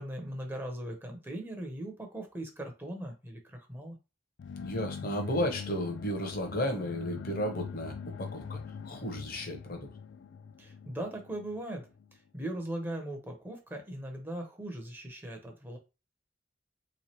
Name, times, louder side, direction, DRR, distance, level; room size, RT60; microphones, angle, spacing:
voice 1, 0.0-4.0 10.6-15.8, right 1 dB, 10° right, 0.7 m, -39 dB
sound 1, 4.4-12.1, left 6 dB, 75° left, 0.3 m, -43 dB
voice 2, 4.6-8.6 8.8-9.9, equal, 50° left, 0.9 m, -33 dB
3.5 x 3.1 x 2.9 m
head